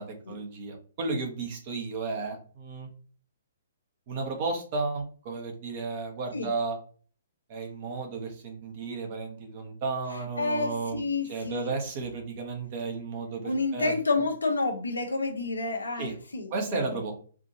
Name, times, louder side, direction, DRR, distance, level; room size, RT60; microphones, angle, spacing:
voice 1, 0.0-2.9 4.1-6.8 7.5-13.9 16.0-16.1 16.5-17.1, right 3 dB, 40° right, 3 dB, 1.1 m, -33 dB
voice 2, 10.1-11.7 13.4-17.0, left 3 dB, 75° left, 2 dB, 0.9 m, -30 dB
4.8 x 2.6 x 2.8 m, 0.42 s
figure-of-eight pair, 120°, 0 cm